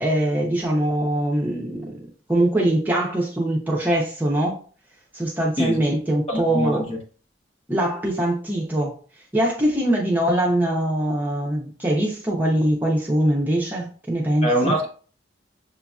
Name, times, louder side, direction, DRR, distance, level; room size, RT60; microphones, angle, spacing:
voice 1, 0.0-2.0 2.3-4.6 5.1-6.9 7.7-8.9 9.3-14.8, right 1 dB, 10° right, 0.8 m, -22 dB
voice 2, 6.3-7.0 14.4-14.9, equal, 35° left, 1.1 m, -23 dB
6.9 x 2.8 x 2.4 m
head